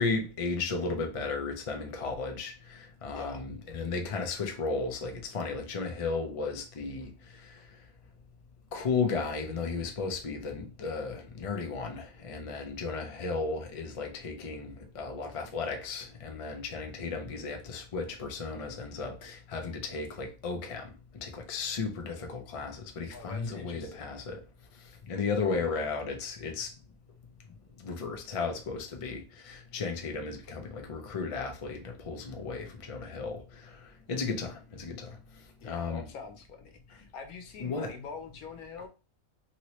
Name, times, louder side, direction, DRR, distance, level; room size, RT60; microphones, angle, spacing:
voice 1, 0.0-7.1 7.4-7.5 8.7-20.9 21.2-24.4 25.0-26.7 27.8-33.8 34.1-35.1 35.6-36.1 37.6-37.9, left 4 dB, 60° left, 0.3 m, -34 dB
voice 2, 23.1-24.1 25.5-25.7 35.6-38.9, left 5 dB, 85° left, 1.2 m, -44 dB
3.0 x 2.9 x 3.0 m
omnidirectional pair, 1.5 m